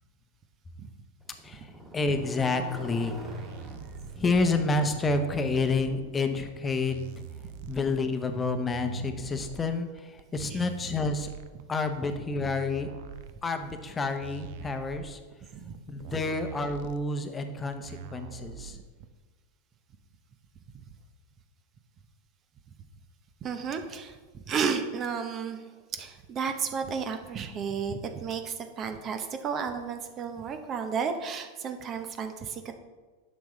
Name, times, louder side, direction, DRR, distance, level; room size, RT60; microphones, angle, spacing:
Motorcycle, 1.2-9.2, right 1 dB, 15° right, 2.3 m, -47 dB
voice 1, 1.4-3.2 4.2-7.0 7.7-11.3 11.7-12.9 13.4-15.2 15.9-18.8, left 3 dB, 20° left, 7 dB, 0.9 m, -29 dB
sound 1, 3.1-19.1, right 8 dB, 65° right, 0.5 m, -44 dB
voice 2, 23.4-24.2 24.4-25.6 25.9-32.7, right 6 dB, 35° right, 7 dB, 0.8 m, -33 dB
10.5 x 6.5 x 3.2 m, 1.4 s
hypercardioid pair, 105°, 0 cm